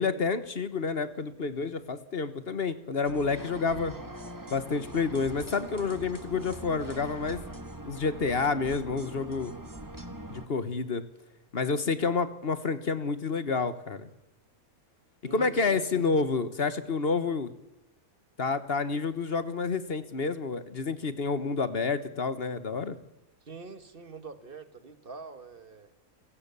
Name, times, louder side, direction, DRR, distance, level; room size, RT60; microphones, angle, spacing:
voice 1, 0.0-3.9 4.5-7.4 7.9-9.5 10.3-11.0 11.5-14.1 15.3-17.5 18.4-23.0, left 4 dB, 45° left, 12 dB, 1.4 m, -29 dB
sound 1, 3.0-10.5, right 1 dB, 15° right, 1.6 m, -42 dB
voice 2, 15.2-16.1 23.4-25.9, right 4 dB, 40° right, 11 dB, 1.6 m, -45 dB
29.5 x 17.5 x 7.0 m, 0.91 s
omnidirectional pair, 1.5 m